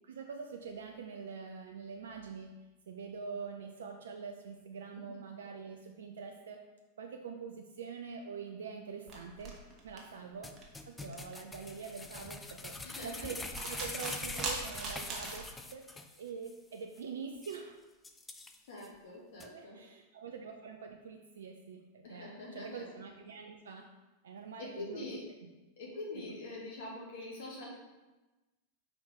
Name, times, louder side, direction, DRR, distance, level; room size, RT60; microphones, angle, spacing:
voice 1, 0.0-2.5 2.9-6.6 7.0-9.5 9.8-10.5 10.9-17.7 19.4-23.9 24.2-25.1 26.1-26.2, right 5 dB, 65° right, 3 dB, 0.5 m, -45 dB
sound 1, 9.1-15.5, right 3 dB, 30° right, 1.2 m, -42 dB
sound 2, 10.4-16.2 16.5-16.6 17.0-17.1 17.4-17.6 18.0-18.9 19.4-19.5, left 2 dB, 10° left, 0.5 m, -44 dB
voice 2, 12.8-13.3 18.7-19.8 22.0-22.8 24.6-25.2 25.8-27.7, left 2 dB, 55° left, -3 dB, 2.0 m, -44 dB
5.5 x 4.3 x 4.3 m, 1.1 s
figure-of-eight pair, 90°, 0 cm